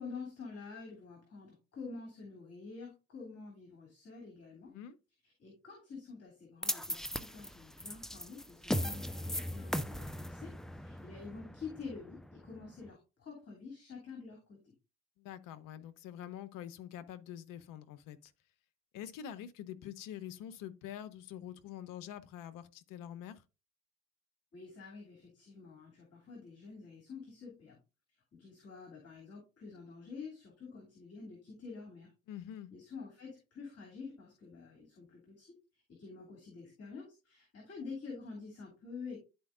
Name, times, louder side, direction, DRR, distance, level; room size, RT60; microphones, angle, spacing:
voice 1, 0.0-4.7 5.2-10.5 10.8-14.7 24.5-27.8 28.1-32.1 32.7-39.2, left 4 dB, 40° left, 2.8 m, -48 dB
sound 1, 6.6-12.9, equal, ahead, 0.4 m, -38 dB
voice 2, 15.2-18.3 18.9-23.4 32.3-32.7, left 10 dB, 55° left, 0.8 m, -46 dB
11.0 x 4.4 x 2.5 m
figure-of-eight pair, 55°, 38 cm